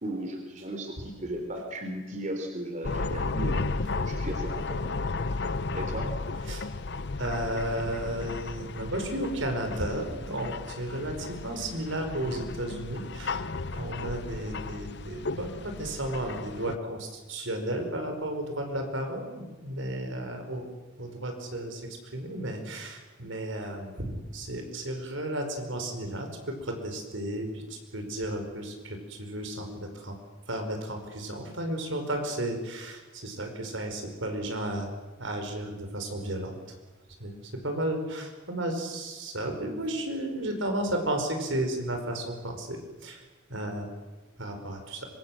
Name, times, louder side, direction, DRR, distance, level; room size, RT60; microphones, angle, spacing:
voice 1, 0.0-5.0 5.7-6.1, right 1 dB, 35° right, 4 dB, 3.6 m, -36 dB
sound 1, 2.8-16.8, left 3 dB, 55° left, 0.7 m, -34 dB
voice 2, 7.2-13.4 13.7-20.6 21.0-30.2 30.5-34.9 35.2-36.6 37.2-37.4 37.6-43.2 43.5-43.9 44.4-45.1, right 1 dB, 75° right, 5 dB, 5.1 m, -33 dB
25.0 x 24.5 x 7.8 m, 1.2 s
head